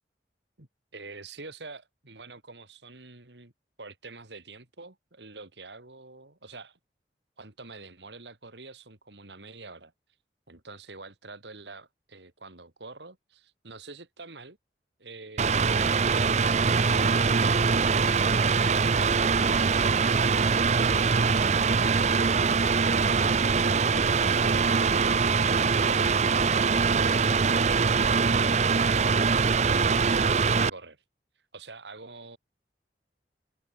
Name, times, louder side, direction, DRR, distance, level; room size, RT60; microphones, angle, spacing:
voice 1, 0.6-3.5 3.8-6.8 7.4-9.9 10.5-14.6 15.0-15.8 24.4-26.0 31.5-32.4, right 3 dB, 80° right, 3.0 m, -46 dB
Mechanical fan, 15.4-30.7, right 5 dB, 40° right, 0.6 m, -23 dB
head